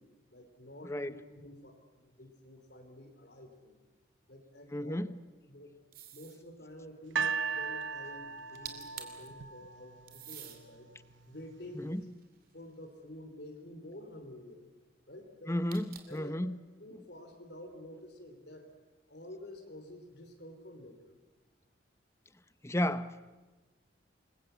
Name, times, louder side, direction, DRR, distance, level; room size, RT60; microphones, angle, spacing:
voice 1, 0.0-3.8 4.3-5.0 5.5-5.7 6.1-10.9 11.3-11.9 12.5-14.6 15.1-15.5 16.1-16.3 16.8-18.7 19.1-21.1, left 1 dB, 60° left, 3.2 m, -49 dB
voice 2, 4.7-5.1 11.7-12.0 15.5-16.6 22.6-23.4, left 1 dB, 15° left, 0.8 m, -33 dB
sound 1, 5.9-6.4 8.4-8.5 8.6-9.3 10.1-10.6 11.3-12.7 15.7-16.3, right 9 dB, 50° right, 2.8 m, -48 dB
sound 2, 7.2-10.3 11.1-11.2, right 5 dB, 85° right, 0.7 m, -36 dB
27.5 x 22.0 x 8.1 m
head